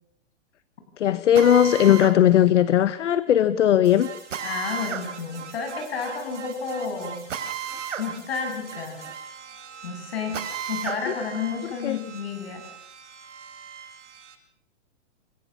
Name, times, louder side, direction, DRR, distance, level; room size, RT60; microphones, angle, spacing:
voice 1, 1.0-4.1 11.1-11.2 11.8-12.0, left 10 dB, 75° left, 14 dB, 1.2 m, -18 dB
Drill, 1.4-2.2 4.3-5.1 7.3-8.1 8.4-8.5 10.3-11.0, right 8 dB, 85° right, 3.4 m, -32 dB
sound 1, 3.8-14.4, right 6 dB, 70° right, 7.5 m, -43 dB
voice 2, 4.4-7.2 8.0-9.1 9.8-10.4 10.7-12.6, left 5 dB, 55° left, 5 dB, 7.8 m, -31 dB
29.5 x 15.0 x 7.3 m, 0.71 s
hypercardioid pair, 180°, 37 cm